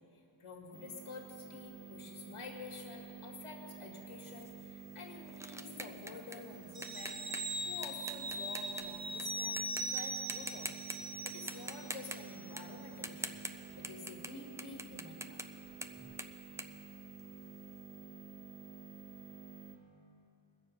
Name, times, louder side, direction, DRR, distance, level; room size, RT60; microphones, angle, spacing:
voice 1, 0.0-7.2 7.7-15.4, left 4 dB, 75° left, -1 dB, 1.9 m, -50 dB
sound 1, 0.7-19.8, right 6 dB, 50° right, 1.7 m, -51 dB
sound 2, 4.4-9.2 9.6-10.0 10.3-11.0 11.3-17.6, right 1 dB, 5° right, 0.4 m, -45 dB
sound 3, 6.7-11.9 12.2-12.3, right 1 dB, 35° right, 1.3 m, -40 dB
21.5 x 7.4 x 5.3 m, 3.0 s
wide cardioid pair, 135°, 50 cm